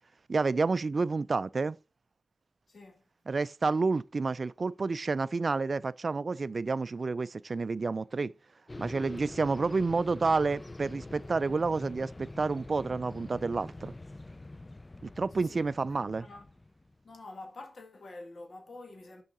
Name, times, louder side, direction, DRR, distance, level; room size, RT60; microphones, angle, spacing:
voice 1, 0.3-1.8 3.3-8.3 8.8-13.9 15.0-16.3, right 4 dB, 50° right, 0.3 m, -29 dB
voice 2, 2.7-3.0 15.4-16.5 17.0-19.2, left 2 dB, 65° left, 2.0 m, -48 dB
sound 1, 8.7-17.0, left 2 dB, 25° left, 0.4 m, -45 dB
6.3 x 4.7 x 4.2 m
cardioid pair, 60°, 0 cm